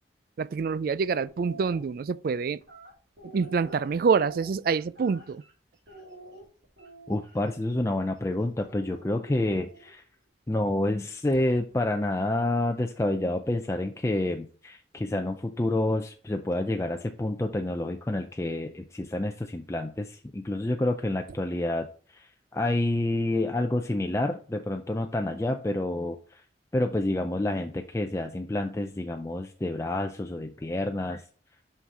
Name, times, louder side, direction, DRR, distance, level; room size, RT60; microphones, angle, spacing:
voice 1, 0.4-2.6 3.2-5.4, right 5 dB, 55° right, 0.3 m, -26 dB
sound 1, 1.2-1.8 2.6-5.5 5.9-7.4 8.6-9.9, right 2 dB, 70° right, 3.0 m, -47 dB
voice 2, 7.1-10.0 10.5-26.4 26.7-31.2, left 1 dB, 15° left, 0.4 m, -28 dB
5.9 x 5.8 x 4.7 m
head